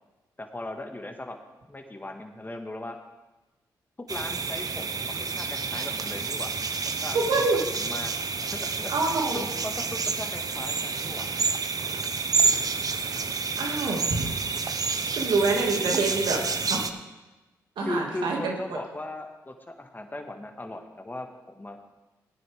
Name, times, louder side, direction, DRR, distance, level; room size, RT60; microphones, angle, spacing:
voice 1, 0.4-1.4 1.7-3.0 4.1-6.5 6.8-7.4 7.7-8.1 8.5-11.4 17.8-21.8, left 1 dB, 25° left, 4 dB, 1.7 m, -38 dB
sound 1, 4.1-16.9, right 4 dB, 50° right, 0.8 m, -29 dB
voice 2, 7.1-7.6 8.9-9.4 13.6-14.3 14.7-14.8 15.2-16.4 16.7-16.9 17.8-18.8, right 3 dB, 75° right, 0 dB, 2.2 m, -26 dB
17.0 x 9.4 x 3.5 m, 1.1 s
supercardioid pair, 45°, 8 cm